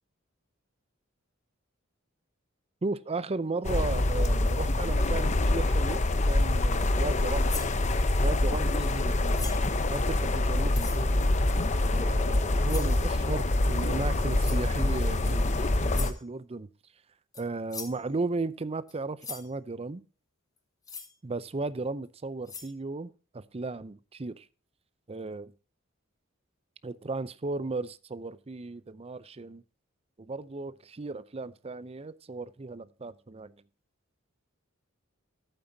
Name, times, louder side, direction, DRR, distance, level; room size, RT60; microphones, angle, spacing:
voice 1, 2.8-7.5 8.2-11.4 12.0-16.7 17.4-20.0 21.2-24.4 25.1-25.5 26.8-29.6 30.2-33.5, right 3 dB, 30° right, 0.5 m, -35 dB
sound 1, 3.6-16.1, left 2 dB, 35° left, 0.8 m, -26 dB
sound 2, 7.5-7.8 9.3-9.7 10.7-11.0 12.7-13.0 14.4-14.7 15.9-16.2 17.3-17.4 17.7-18.0 18.9-19.0 19.2-19.5 20.8-21.1 22.0-22.1 22.5-22.7, left 5 dB, 20° left, 1.2 m, -40 dB
11.0 x 8.9 x 2.7 m
head